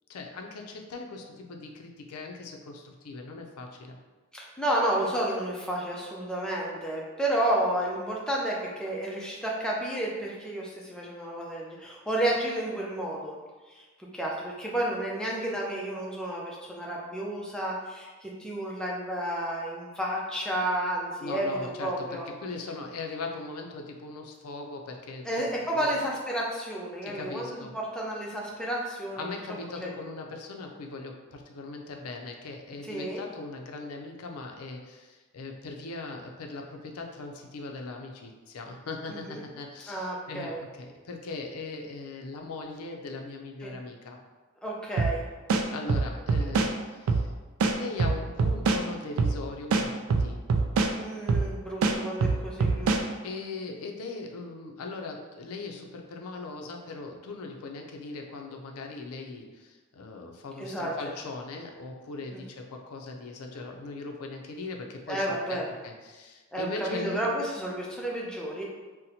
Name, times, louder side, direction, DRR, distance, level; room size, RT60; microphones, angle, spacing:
voice 1, 0.1-4.0 21.2-22.1 22.4-25.5 25.7-25.9 27.0-27.7 29.2-44.2 45.7-47.3 47.8-49.9 50.2-50.4 52.9-67.3, left 3 dB, 80° left, 2 dB, 0.5 m, -39 dB
voice 2, 4.3-13.3 13.7-13.9 14.1-22.2 25.2-29.3 29.8-29.9 32.8-33.2 39.1-39.4 39.9-40.6 43.6-43.7 44.6-45.2 51.0-53.0 60.6-61.1 62.3-62.4 65.1-65.7 66.5-68.6, right 1 dB, 5° left, -3 dB, 0.4 m, -31 dB
sound 1, 45.0-45.1 45.5-46.7 47.1-47.2 47.6-48.8 49.2-49.4 49.7-50.9 51.3-51.5 51.8-53.0, right 4 dB, 65° right, 0.3 m, -24 dB
4.1 x 2.1 x 2.7 m, 1.3 s
head